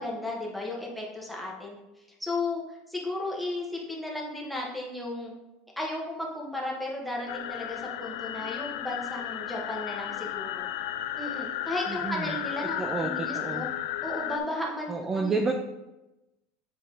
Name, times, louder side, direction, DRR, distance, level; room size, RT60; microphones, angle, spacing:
voice 1, 0.0-5.3 5.8-10.6 11.2-13.7 14.0-15.4, left 2 dB, ahead, -3 dB, 1.2 m, -34 dB
sound 1, 7.3-14.4, left 12 dB, 75° left, 0.3 m, -34 dB
voice 2, 11.9-12.4 12.6-13.6 14.9-15.5, right 3 dB, 15° right, 4 dB, 0.4 m, -30 dB
7.7 x 3.3 x 3.9 m, 0.98 s
supercardioid pair, 140°, 2 cm